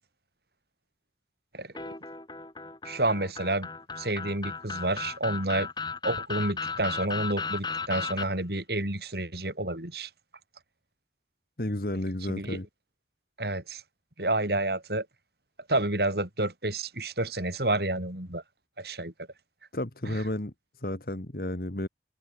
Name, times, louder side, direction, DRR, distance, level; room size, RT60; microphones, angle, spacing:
sound 1, 1.8-8.3, left 4 dB, 25° left, 4.4 m, -35 dB
voice 1, 2.8-3.7 4.0-5.7 6.0-10.1 12.3-12.6 13.4-13.8 14.2-15.1 15.7-18.4 18.8-19.1 20.1-20.2, right 2 dB, 65° right, 5.4 m, -29 dB
voice 2, 11.6-12.7 19.7-21.9, left 1 dB, 55° left, 1.9 m, -32 dB
head